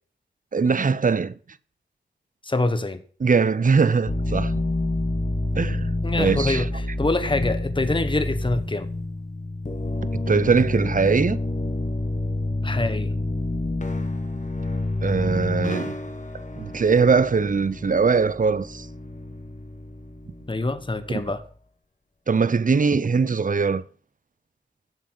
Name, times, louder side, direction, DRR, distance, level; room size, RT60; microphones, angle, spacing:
voice 1, 0.5-1.3 3.2-4.5 5.5-5.9 6.2-6.6 10.1-11.4 15.0-15.9 16.6-18.9 22.3-23.8, right 5 dB, 45° right, 0.8 m, -21 dB
voice 2, 2.4-3.0 6.0-8.9 12.6-13.1 20.5-21.4, left 2 dB, 25° left, 1.3 m, -25 dB
sound 1, 4.1-21.5, left 2 dB, 40° left, 2.2 m, -28 dB
11.0 x 7.3 x 7.6 m
cardioid pair, 50°, 18 cm